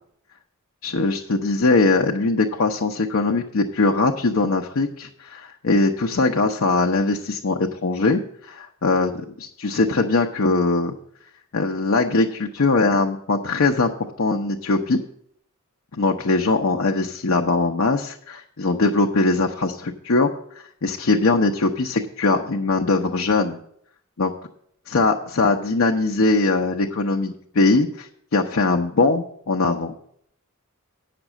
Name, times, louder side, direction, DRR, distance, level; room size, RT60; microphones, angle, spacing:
voice 1, 0.8-10.9 11.5-15.0 16.0-23.6 24.2-24.3 24.9-29.9, left 3 dB, 70° left, 1 dB, 0.7 m, -21 dB
9.0 x 6.0 x 7.2 m, 0.67 s
head